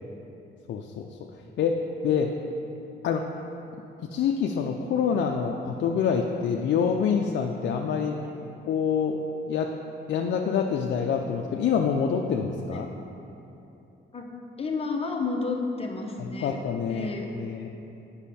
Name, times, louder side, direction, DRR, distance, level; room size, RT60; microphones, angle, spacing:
voice 1, 0.7-1.1 1.6-2.3 3.0-3.2 4.1-8.2 8.7-9.7 10.1-12.9 16.4-17.7, left 6 dB, 65° left, 2 dB, 0.5 m, -26 dB
voice 2, 14.6-16.6 16.9-17.3, left 3 dB, 30° left, 1 dB, 0.9 m, -31 dB
8.2 x 5.5 x 4.2 m, 2.9 s
cardioid pair, 90°, 20 cm